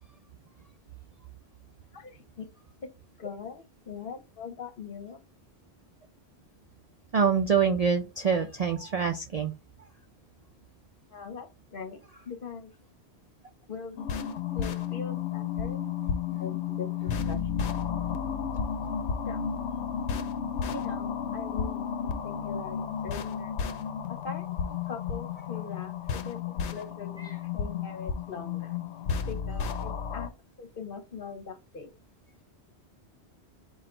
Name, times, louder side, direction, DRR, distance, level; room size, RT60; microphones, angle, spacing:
voice 1, 1.9-2.5 2.8-2.9 3.2-5.2 11.1-12.7 13.7-14.1 14.5-15.8 16.3-17.7 19.3-19.4 20.7-23.6 24.1-28.8 29.2-30.3 30.6-31.9, left 5 dB, 55° left, 0.9 m, -41 dB
voice 2, 7.1-9.5 27.2-27.3, right 6 dB, 55° right, 0.4 m, -25 dB
sound 1, 14.0-30.3, left 7 dB, 85° left, 0.9 m, -32 dB
4.2 x 2.4 x 4.2 m
omnidirectional pair, 1.1 m